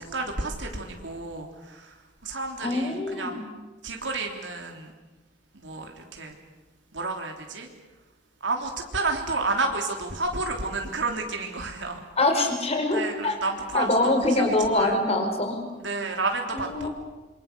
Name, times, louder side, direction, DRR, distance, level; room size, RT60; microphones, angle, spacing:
voice 1, 0.0-2.0 2.2-3.4 3.8-4.9 5.5-6.4 6.9-7.7 8.4-12.0 12.9-15.0 15.8-16.9, right 3 dB, 75° right, 2 dB, 3.5 m, -31 dB
voice 2, 2.6-3.4 12.2-13.4 13.7-15.6 16.5-16.9, left 2 dB, 35° left, 5 dB, 4.8 m, -24 dB
27.0 x 25.0 x 6.9 m, 1.2 s
head